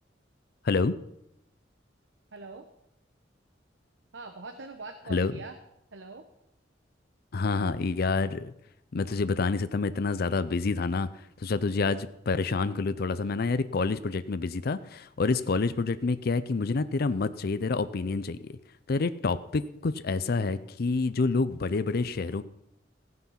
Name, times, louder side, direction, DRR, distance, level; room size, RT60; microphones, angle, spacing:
voice 1, 2.3-2.7 4.1-5.6 5.9-6.3, right 3 dB, 75° right, 6 dB, 1.0 m, -43 dB
voice 2, 7.3-8.5 8.9-11.1 11.4-18.5 18.9-22.4, left 4 dB, 55° left, 13 dB, 0.5 m, -28 dB
15.5 x 9.5 x 5.7 m, 0.83 s
head